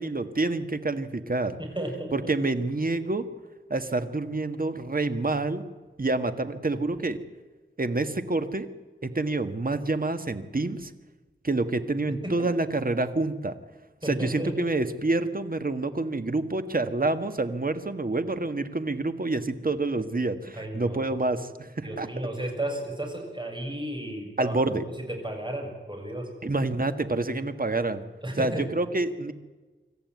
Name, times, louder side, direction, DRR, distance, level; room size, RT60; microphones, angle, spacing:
voice 1, 0.0-1.6 2.1-3.2 3.7-5.6 6.0-7.2 7.8-8.7 9.0-10.9 11.4-13.5 14.0-22.1 24.4-24.8 26.4-28.0 28.4-29.3, right 2 dB, 45° right, 9 dB, 1.7 m, -27 dB
voice 2, 1.6-2.1 12.1-12.3 14.0-14.5 20.5-21.1 21.8-24.6 25.1-26.3 28.2-28.6, right 1 dB, 25° right, 2 dB, 7.4 m, -33 dB
26.0 x 14.0 x 9.5 m, 1.3 s
wide cardioid pair, 60°, 21 cm